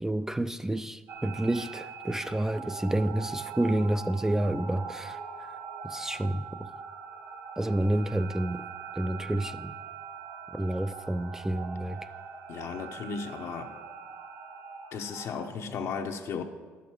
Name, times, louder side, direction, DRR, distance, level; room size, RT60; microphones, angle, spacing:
voice 1, 0.0-5.5 5.8-6.7 7.6-8.7 8.9-9.7 10.5-12.0, right 1 dB, 10° right, 0.4 m, -29 dB
sound 1, 1.1-15.5, right 6 dB, 80° right, 1.6 m, -42 dB
voice 2, 12.5-13.7 14.9-16.4, left 5 dB, 65° left, 0.9 m, -35 dB
11.5 x 7.2 x 4.7 m
supercardioid pair, 70°, 5 cm